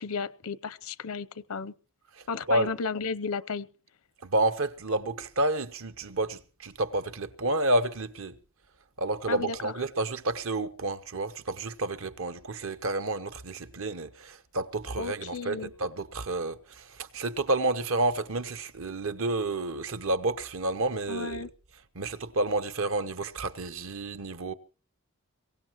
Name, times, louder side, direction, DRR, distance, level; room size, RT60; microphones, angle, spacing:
voice 1, 0.0-1.7 2.3-3.7 9.3-9.7 15.0-15.7 21.1-21.5, left 5 dB, 80° left, 0.7 m, -33 dB
voice 2, 2.1-2.7 4.2-8.4 9.0-21.5 21.9-24.5, right 2 dB, 65° right, 1.0 m, -30 dB
22.5 x 18.0 x 3.1 m
head